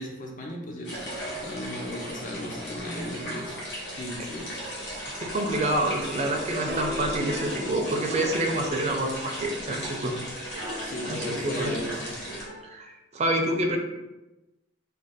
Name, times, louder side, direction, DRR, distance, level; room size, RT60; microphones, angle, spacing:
voice 1, 0.0-3.6 4.0-4.6 10.8-12.1, left 1 dB, 40° left, 0 dB, 0.5 m, -36 dB
sound 1, 0.8-12.4, equal, 70° left, 0.8 m, -36 dB
voice 2, 5.2-10.1 10.5-11.7 12.6-13.8, right 1 dB, 35° right, 2 dB, 0.4 m, -28 dB
sound 2, 5.7-12.6, equal, 20° left, 0.9 m, -42 dB
sound 3, 6.7-9.1, left 1 dB, 85° right, 0.5 m, -38 dB
2.6 x 2.2 x 3.5 m, 1.0 s
head